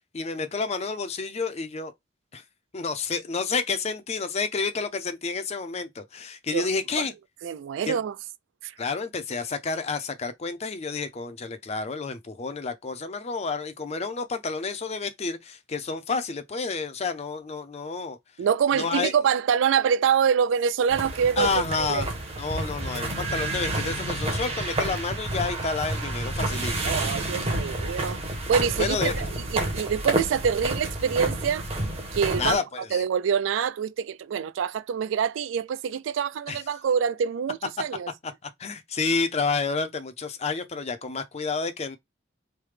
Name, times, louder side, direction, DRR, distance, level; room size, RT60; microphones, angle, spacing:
voice 1, 0.1-1.9 2.3-2.4 2.7-7.1 7.9-8.0 8.8-18.2 18.7-19.1 21.4-22.1 22.4-26.7 28.8-29.3 32.4-33.0 36.5-36.6 38.2-38.3 38.6-42.0, left 4 dB, 35° left, 0.5 m, -29 dB
voice 2, 7.4-8.2 8.6-8.7 18.4-22.1 26.8-28.2 28.5-31.7 32.1-32.6 32.9-38.1, right 7 dB, 70° right, 0.3 m, -25 dB
sound 1, 20.9-32.6, right 1 dB, 30° right, 0.9 m, -30 dB
3.3 x 2.1 x 3.2 m
head